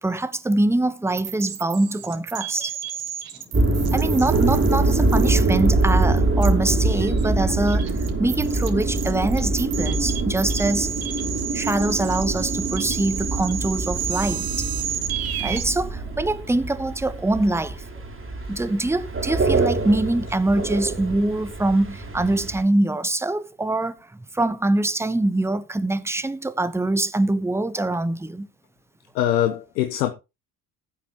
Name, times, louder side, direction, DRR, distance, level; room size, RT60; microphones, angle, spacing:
voice 1, 0.0-2.7 3.9-10.9 11.5-14.7 15.4-17.8 18.5-28.5, right 2 dB, 5° right, 1.0 m, -24 dB
sound 1, 1.2-15.6, right 10 dB, 45° right, 1.9 m, -32 dB
sound 2, 3.5-22.6, right 2 dB, 25° right, 3.1 m, -24 dB
voice 2, 29.1-30.1, left 11 dB, 85° left, 1.0 m, -23 dB
15.5 x 8.1 x 3.0 m
hypercardioid pair, 65°, 49 cm